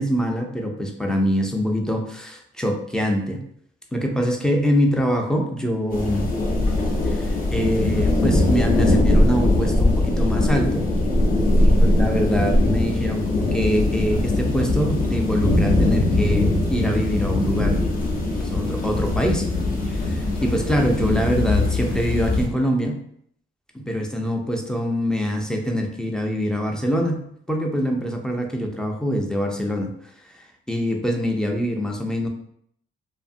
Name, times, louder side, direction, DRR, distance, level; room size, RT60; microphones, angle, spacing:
voice 1, 0.0-3.4 3.9-6.3 7.0-10.8 11.6-17.8 18.4-19.5 19.9-23.0 23.7-29.9 30.3-32.3, equal, 5° left, 2 dB, 0.3 m, -24 dB
sound 1, 5.9-22.5, left 1 dB, 45° left, 0.6 m, -21 dB
2.7 x 2.5 x 2.5 m, 0.68 s
cardioid pair, 125°, 21 cm